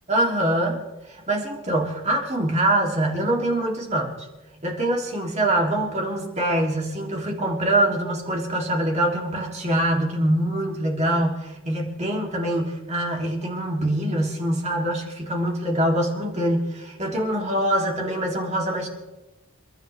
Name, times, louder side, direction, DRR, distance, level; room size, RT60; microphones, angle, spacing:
voice 1, 0.1-0.8 1.1-4.2 4.6-18.9, right 1 dB, 35° right, 0 dB, 3.2 m, -24 dB
30.0 x 12.5 x 3.5 m, 1.0 s
head